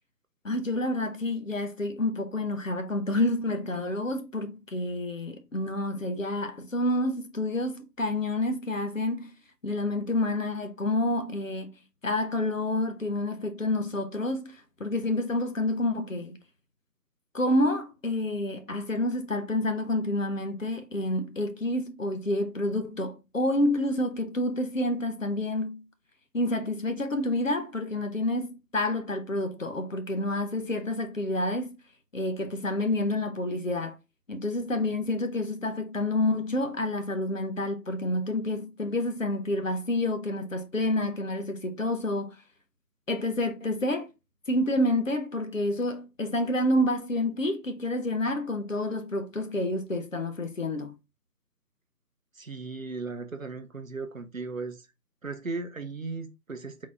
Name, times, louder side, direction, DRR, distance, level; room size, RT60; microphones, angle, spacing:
voice 1, 0.4-9.3 9.6-11.7 12.0-16.4 17.3-25.8 26.3-31.8 32.1-34.0 34.3-42.4 43.1-44.1 44.5-50.9, left 1 dB, 50° left, 0.7 m, -28 dB
voice 2, 52.3-54.9 55.2-56.9, right 3 dB, 55° right, 0.6 m, -36 dB
3.9 x 3.2 x 2.5 m
figure-of-eight pair, 165°, 49 cm